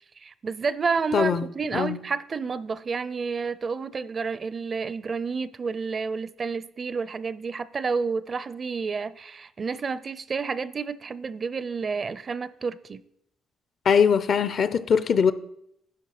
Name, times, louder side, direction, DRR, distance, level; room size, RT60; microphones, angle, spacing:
voice 1, 0.2-13.0, right 5 dB, 40° right, 0.4 m, -30 dB
voice 2, 1.1-1.5 1.7-2.0 13.8-15.3, left 6 dB, 55° left, 0.6 m, -21 dB
11.0 x 5.4 x 5.8 m
cardioid pair, 90°, 0 cm